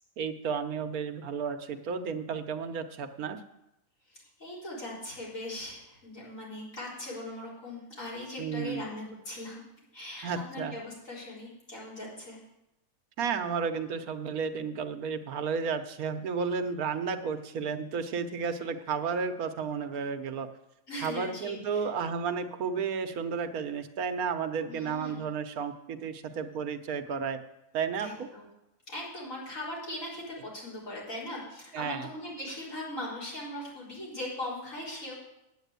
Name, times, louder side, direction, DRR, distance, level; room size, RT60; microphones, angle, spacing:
voice 1, 0.2-3.4 8.4-8.8 10.2-10.7 13.2-20.5 21.0-27.4 27.7-28.3 31.7-32.1, right 6 dB, 85° right, 8 dB, 1.3 m, -32 dB
voice 2, 4.1-9.6 9.9-12.4 20.9-21.9 24.6-25.3 28.0-28.5 28.9-35.1, left 1 dB, 65° left, -6 dB, 4.7 m, -40 dB
9.1 x 9.0 x 8.1 m, 0.87 s
omnidirectional pair, 1.5 m